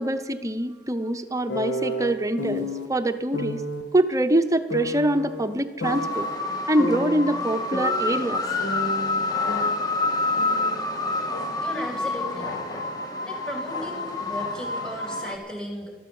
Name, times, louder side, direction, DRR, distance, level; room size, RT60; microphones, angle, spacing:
voice 1, 0.0-3.6 3.9-6.3 6.7-8.4, right 1 dB, 20° right, 9 dB, 0.8 m, -24 dB
sound 1, 1.5-2.9 3.3-3.8 4.7-6.3 6.8-8.4 8.6-10.8 11.0-12.6, equal, 85° left, 1.5 m, -32 dB
sound 2, 5.8-15.4, left 2 dB, 20° left, 1.7 m, -28 dB
voice 2, 11.6-12.6 13.2-15.9, equal, 5° left, 1 dB, 3.2 m, -35 dB
13.0 x 12.5 x 7.1 m, 1.3 s
head